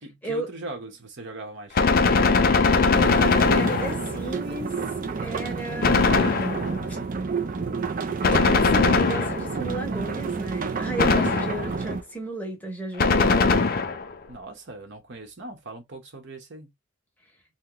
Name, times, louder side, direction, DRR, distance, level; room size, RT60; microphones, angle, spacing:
voice 1, 0.0-2.0 14.3-16.7, right 2 dB, 55° right, 0.9 m, -40 dB
Gunshot gunfire, 1.7-4.3 5.8-6.9 8.2-9.7 11.0-11.8 13.0-14.1, left 4 dB, 40° left, 0.4 m, -21 dB
sound 1, 2.9-12.0, right 4 dB, 40° right, 0.4 m, -30 dB
voice 2, 3.0-4.7 5.2-6.6 6.9-7.0 8.5-13.4, right 2 dB, 5° left, 0.9 m, -34 dB
2.9 x 2.1 x 3.7 m
head